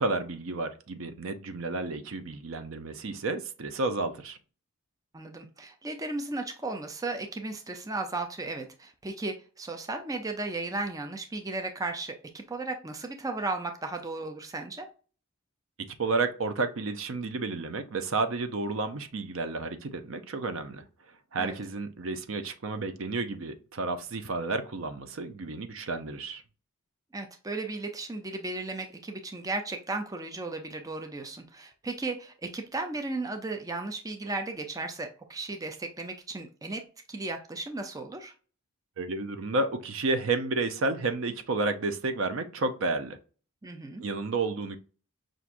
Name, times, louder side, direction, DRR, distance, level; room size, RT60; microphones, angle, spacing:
voice 1, 0.0-4.4 15.9-20.8 21.3-26.4 39.0-43.2 44.0-44.8, right 3 dB, 65° right, 0.6 m, -31 dB
voice 2, 5.1-14.9 21.4-21.6 27.1-36.8 37.1-38.3 43.6-44.0, right 2 dB, 15° right, 0.5 m, -35 dB
5.8 x 2.5 x 2.5 m
head